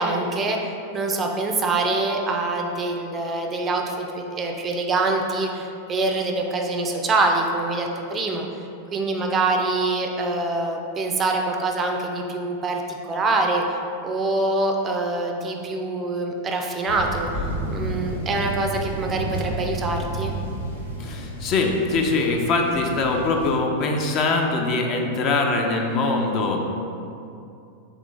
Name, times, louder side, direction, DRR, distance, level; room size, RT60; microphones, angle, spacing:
voice 1, 0.0-8.5 8.9-12.8 13.1-17.3 17.7-20.3, right 2 dB, 25° right, 2 dB, 0.4 m, -25 dB
Thunder, 16.9-23.5, right 1 dB, 85° left, 0.7 m, -31 dB
voice 2, 21.0-26.6, left 3 dB, 35° left, 2 dB, 0.4 m, -22 dB
3.7 x 3.3 x 3.4 m, 2.6 s
figure-of-eight pair, 90°, 0 cm